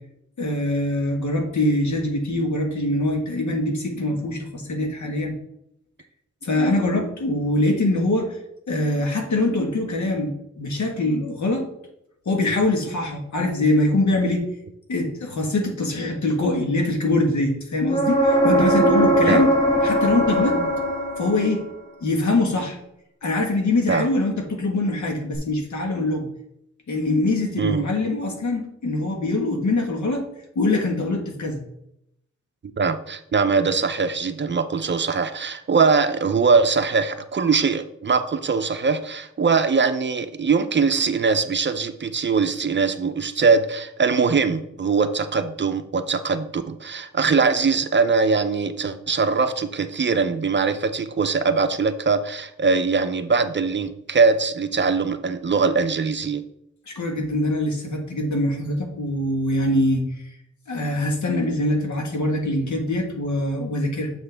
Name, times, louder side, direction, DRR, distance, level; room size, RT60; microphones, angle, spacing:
voice 1, 0.4-5.4 6.4-8.4 8.7-11.7 12.2-14.4 14.9-19.5 19.8-20.6 21.2-21.6 22.0-22.8 23.2-26.3 26.9-30.3 30.5-31.6 56.9-60.1 60.7-64.1, left 2 dB, 75° left, 2 dB, 1.5 m, -23 dB
sound 1, 17.9-21.7 25.3-25.4, right 1 dB, 25° left, 1.6 m, -20 dB
voice 2, 32.8-56.4, right 4 dB, 40° right, 10 dB, 0.5 m, -21 dB
6.9 x 5.8 x 3.4 m, 0.79 s
wide cardioid pair, 95°, 29 cm